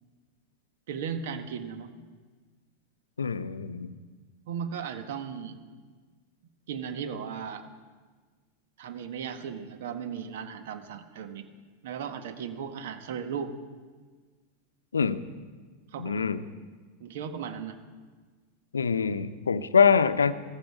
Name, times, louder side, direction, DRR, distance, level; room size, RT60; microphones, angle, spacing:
voice 1, 0.9-1.9 4.5-5.6 6.7-7.7 8.8-11.5 11.8-13.5 15.9-16.2 17.0-17.8, right 7 dB, 65° right, 8 dB, 1.5 m, -36 dB
voice 2, 3.2-3.9 14.9-15.2 16.0-16.4 18.7-20.3, left 6 dB, 85° left, 14 dB, 0.7 m, -24 dB
17.0 x 15.0 x 4.8 m, 1.4 s
hypercardioid pair, 90°, 0 cm